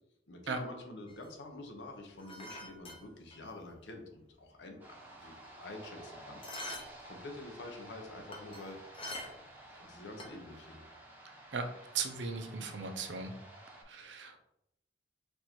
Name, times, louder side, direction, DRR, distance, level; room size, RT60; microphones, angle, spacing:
voice 1, 0.3-6.8 7.0-8.8 9.7-10.8, left 2 dB, 65° left, 3 dB, 0.7 m, -48 dB
sound 1, 1.1-3.7 4.0-4.1 4.4-6.0 6.4-7.1 7.3-9.6 9.9-10.7, left 1 dB, 30° left, 0.8 m, -46 dB
sound 2, 4.8-13.8, right 1 dB, 10° right, 0.9 m, -53 dB
voice 2, 11.9-13.3 13.9-14.4, right 5 dB, 70° right, 5 dB, 0.6 m, -37 dB
4.5 x 2.6 x 4.3 m, 0.79 s
head